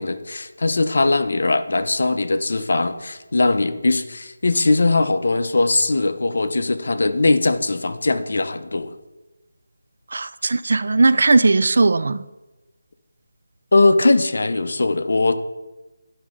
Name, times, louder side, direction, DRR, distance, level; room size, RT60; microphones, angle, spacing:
voice 1, 0.0-8.9 13.7-15.3, left 3 dB, 65° left, 0.7 m, -20 dB
voice 2, 10.1-12.2, right 3 dB, 60° right, 0.3 m, -17 dB
10.0 x 5.1 x 3.7 m
figure-of-eight pair, 170°, 0 cm